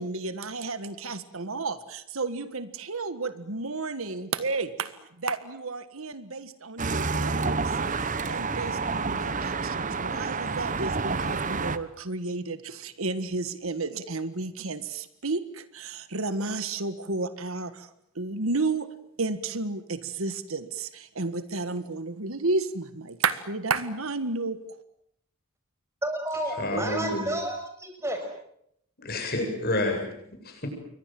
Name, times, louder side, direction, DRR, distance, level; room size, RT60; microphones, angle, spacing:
voice 1, 0.0-17.9 18.2-18.9 19.2-24.6, right 3 dB, 70° right, 12 dB, 1.6 m, -32 dB
sound 1, 6.8-11.8, right 4 dB, 35° right, 1.1 m, -29 dB
voice 2, 26.0-28.3, right 1 dB, 15° right, 4 dB, 6.5 m, -31 dB
voice 3, 26.6-27.3 29.0-30.1 30.4-30.7, left 1 dB, 45° left, 4 dB, 7.9 m, -29 dB
29.0 x 23.5 x 7.7 m, 0.73 s
head